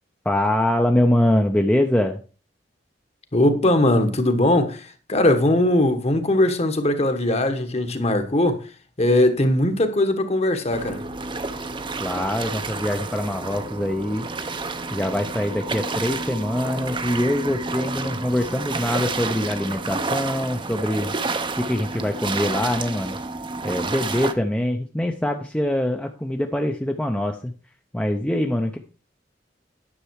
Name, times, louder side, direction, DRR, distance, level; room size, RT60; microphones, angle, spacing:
voice 1, 0.2-2.2 12.0-14.3 14.9-21.1 21.5-23.2 23.6-27.5 27.9-28.8, left 1 dB, 5° left, 0.6 m, -23 dB
voice 2, 3.3-8.6 9.0-11.0, left 1 dB, 35° left, 1.3 m, -20 dB
sound 1, 10.7-24.3, right 3 dB, 25° right, 0.7 m, -30 dB
10.0 x 6.8 x 4.7 m
head